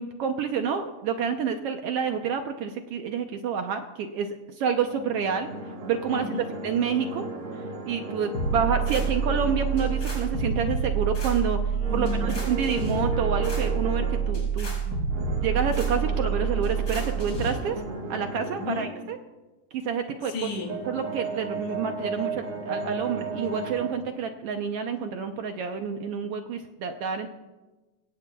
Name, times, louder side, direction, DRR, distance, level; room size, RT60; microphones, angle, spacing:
voice 1, 0.0-5.5 5.8-6.3 6.6-7.2 7.8-11.6 11.9-15.1 15.4-17.8 18.1-19.2 19.7-20.3 20.9-27.3, right 6 dB, 75° right, 6 dB, 1.4 m, -28 dB
sound 1, 4.8-11.0 11.8-14.3 15.1-18.9 20.2-23.9, right 2 dB, 50° right, 2.4 m, -35 dB
voice 2, 6.1-6.6 11.7-12.3 18.6-18.9 20.3-20.8, left 4 dB, 75° left, 1 dB, 3.7 m, -33 dB
sound 2, 8.3-17.5, right 6 dB, 30° left, 5.4 m, -27 dB
24.5 x 16.5 x 2.3 m, 1.2 s
omnidirectional pair, 3.5 m